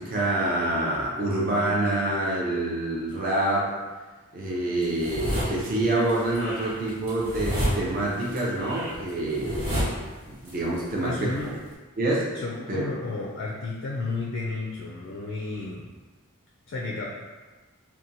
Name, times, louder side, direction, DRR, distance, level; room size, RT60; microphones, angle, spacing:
voice 1, 0.0-3.7 4.3-9.9 10.3-11.3 12.0-12.3 12.7-12.8, right 1 dB, 40° right, -4 dB, 0.5 m, -26 dB
sound 1, 4.8-5.7 6.1-10.5 10.8-11.7, equal, 65° right, 1.1 m, -30 dB
voice 2, 11.0-11.5 12.3-15.9 16.7-17.1, left 3 dB, 60° left, -2 dB, 0.3 m, -32 dB
2.8 x 2.2 x 2.5 m, 1.3 s
head